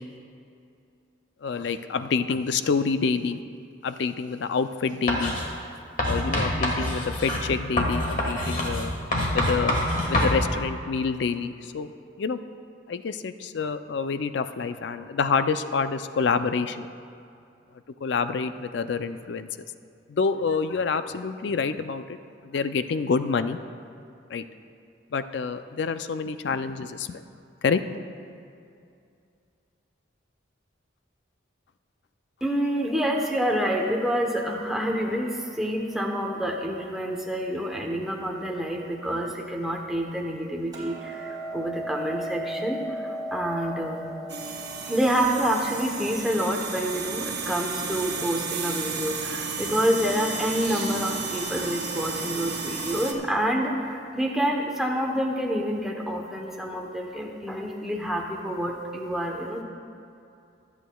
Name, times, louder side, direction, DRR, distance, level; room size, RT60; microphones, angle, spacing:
voice 1, 1.4-3.4 3.8-5.3 6.0-8.9 9.3-9.7 10.0-11.9 12.2-12.4 12.9-16.9 18.0-19.7 20.1-22.2 22.4-23.6 24.3-24.4 25.1-27.2 27.6-27.8, left 5 dB, 60° left, 11 dB, 0.4 m, -27 dB
Writing, 5.1-5.5 6.0-10.4, left 1 dB, 40° left, 1.4 m, -26 dB
voice 2, 32.4-44.1 44.9-59.6, equal, ahead, -1 dB, 0.8 m, -28 dB
Hammer, 40.7-47.0, right 1 dB, 20° right, 2.2 m, -36 dB
sound 1, 44.3-53.1, right 4 dB, 55° right, 1.0 m, -33 dB
23.5 x 8.3 x 2.3 m, 2.5 s
head